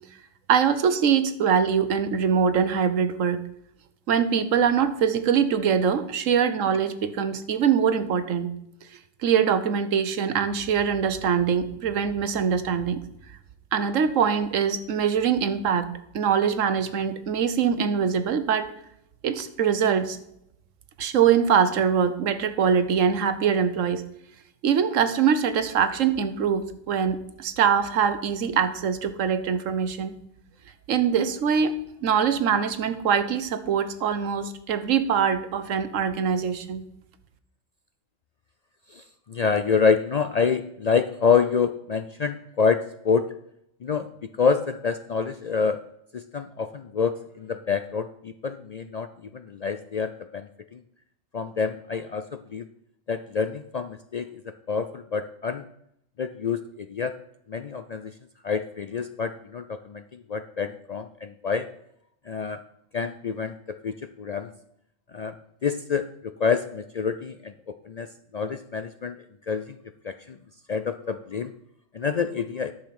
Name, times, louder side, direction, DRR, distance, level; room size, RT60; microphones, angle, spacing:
voice 1, 0.5-3.4 4.1-8.5 9.2-13.0 13.7-15.9 16.1-18.7 19.2-20.2 21.0-24.0 24.6-30.1 30.9-31.7 32.0-36.8, right 7 dB, 85° right, 11 dB, 1.3 m, -23 dB
voice 2, 38.9-43.3 43.8-44.1 44.4-45.8 46.1-50.8 51.3-52.7 53.1-54.4 54.7-55.6 56.2-57.2 57.5-58.1 58.4-61.7 62.3-62.6 62.9-64.5 65.1-65.4 65.6-68.1 68.3-69.2 69.5-69.8 70.0-70.4 70.7-71.5 71.9-72.7, left 5 dB, 70° left, 10 dB, 0.3 m, -27 dB
10.5 x 6.7 x 5.9 m, 0.76 s
omnidirectional pair, 1.3 m